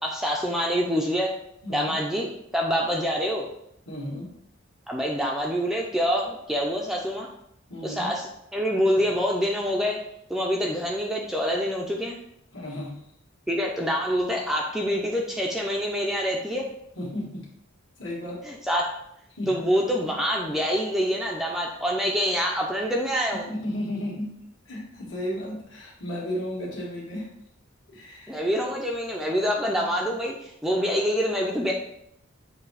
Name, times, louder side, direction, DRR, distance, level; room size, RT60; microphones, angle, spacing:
voice 1, 0.0-1.4 1.7-3.5 4.9-7.3 7.8-10.0 10.3-12.2 13.5-16.7 18.5-18.9 19.5-23.5 28.3-31.7, equal, ahead, -1 dB, 0.5 m, -26 dB
voice 2, 1.6-2.0 3.9-4.3 7.7-8.1 12.5-13.0 17.0-17.5 18.0-18.4 19.3-19.6 23.3-24.4 24.7-27.3 27.9-28.4, left 1 dB, 60° left, -3 dB, 2.1 m, -34 dB
7.4 x 2.9 x 4.7 m, 0.74 s
head